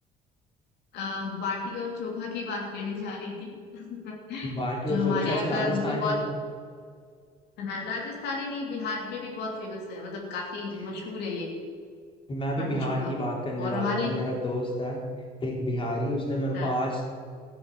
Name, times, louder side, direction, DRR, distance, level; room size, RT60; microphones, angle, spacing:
voice 1, 0.9-6.2 7.6-11.5 12.5-13.1 13.6-14.3 16.5-16.7, left 4 dB, 80° left, -1 dB, 2.7 m, -32 dB
voice 2, 4.4-6.2 12.3-15.0 15.4-17.0, equal, 30° left, -1 dB, 3.6 m, -29 dB
14.5 x 7.0 x 7.6 m, 2.1 s
cardioid pair, 110°, 17 cm